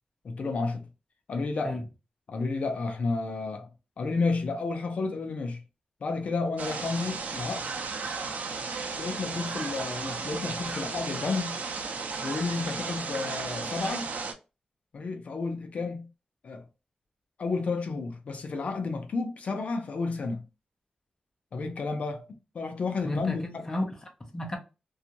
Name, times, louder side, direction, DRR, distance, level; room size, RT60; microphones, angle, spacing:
voice 1, 0.2-0.9 1.3-1.8 2.3-3.7 4.0-5.6 6.0-7.7 8.9-11.6 12.2-14.1 14.9-16.1 16.4-16.6 17.4-20.4 21.5-22.3 22.5-23.7, left 4 dB, 60° left, 0.5 m, -31 dB
sound 1, 6.6-14.3, right 4 dB, 80° right, 0.5 m, -34 dB
voice 2, 23.0-24.6, left 1 dB, 20° left, 0.7 m, -33 dB
2.6 x 2.4 x 2.8 m
wide cardioid pair, 160°, 3 cm